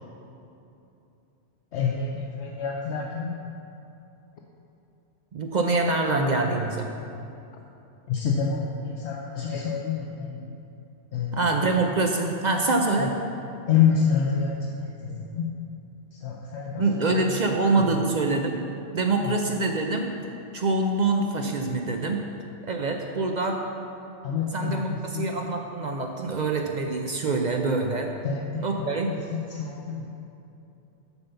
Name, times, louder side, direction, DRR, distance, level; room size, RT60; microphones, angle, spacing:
voice 1, 1.7-3.3 8.1-10.4 11.1-11.4 13.0-13.1 13.7-15.5 16.1-18.0 19.2-19.4 24.2-25.2 28.2-30.1, left 6 dB, 70° left, 0 dB, 0.9 m, -28 dB
voice 2, 5.3-6.9 11.3-13.1 16.8-18.6 18.9-20.1 20.5-22.2 22.6-23.6 24.5-28.1 28.6-29.1, right 3 dB, 50° right, 3 dB, 0.5 m, -25 dB
6.9 x 5.5 x 6.8 m, 2.7 s
omnidirectional pair, 1.2 m